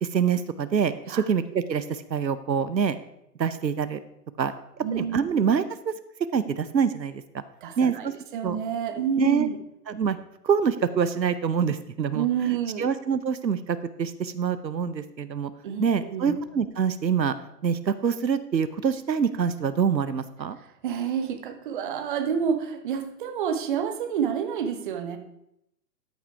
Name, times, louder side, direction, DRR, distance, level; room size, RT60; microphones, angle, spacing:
voice 1, 0.0-3.0 3.4-4.0 4.4-4.5 4.9-5.9 6.3-7.2 7.8-8.1 8.4-8.6 9.2-9.5 9.9-10.2 10.4-12.3 12.8-15.5 15.8-17.3 17.6-20.6, right 7 dB, 85° right, 13 dB, 0.8 m, -25 dB
voice 2, 4.8-5.4 7.6-9.6 12.1-12.9 15.6-16.3 20.8-25.2, right 8 dB, 30° right, 6 dB, 1.0 m, -28 dB
13.0 x 5.7 x 4.7 m, 0.81 s
figure-of-eight pair, 130°, 50 cm